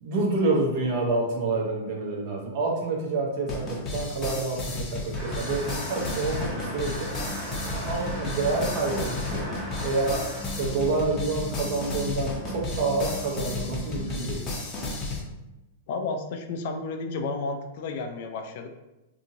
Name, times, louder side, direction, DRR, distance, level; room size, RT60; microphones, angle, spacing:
voice 1, 0.0-7.1 7.7-9.4 9.8-10.2 10.6-14.4, right 3 dB, 55° right, -2 dB, 0.9 m, -28 dB
sound 1, 3.5-15.2, left 2 dB, 30° left, 0.7 m, -33 dB
sound 2, 5.1-11.1, equal, 30° right, 1.0 m, -37 dB
sound 3, 7.3-14.1, right 1 dB, 70° right, 0.5 m, -40 dB
voice 2, 15.9-18.7, left 3 dB, 60° left, 5 dB, 0.4 m, -32 dB
2.7 x 2.7 x 2.6 m, 0.97 s
hypercardioid pair, 130°, 0 cm